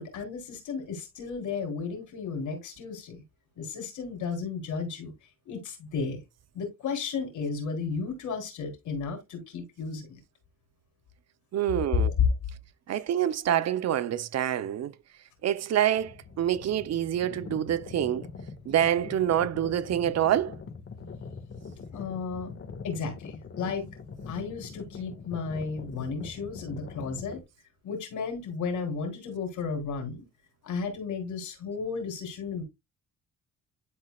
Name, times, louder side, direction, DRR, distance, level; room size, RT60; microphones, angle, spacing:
voice 1, 0.0-3.2 3.6-5.1 5.5-6.2 6.5-10.2 11.9-12.3 21.9-22.5 22.8-23.8 24.3-27.4 27.8-30.2 30.6-32.6, left 5 dB, 80° left, 3.9 m, -33 dB
voice 2, 11.5-12.1 12.9-14.9 15.4-18.3 18.7-20.6, right 11 dB, 60° right, 0.8 m, -26 dB
sound 1, 16.0-27.4, left 5 dB, 45° left, 1.8 m, -43 dB
12.0 x 4.3 x 2.4 m
cardioid pair, 90°, 30 cm